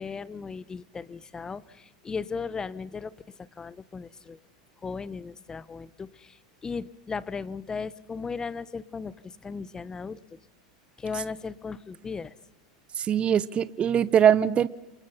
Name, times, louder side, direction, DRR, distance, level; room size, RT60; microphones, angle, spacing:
voice 1, 0.0-4.4 4.8-9.1 9.4-10.4 11.0-12.3, left 5 dB, 20° left, 19 dB, 1.1 m, -36 dB
voice 2, 13.0-14.7, right 9 dB, 30° right, 18 dB, 0.9 m, -22 dB
28.0 x 27.5 x 5.7 m, 0.94 s
hypercardioid pair, 100°, 4 cm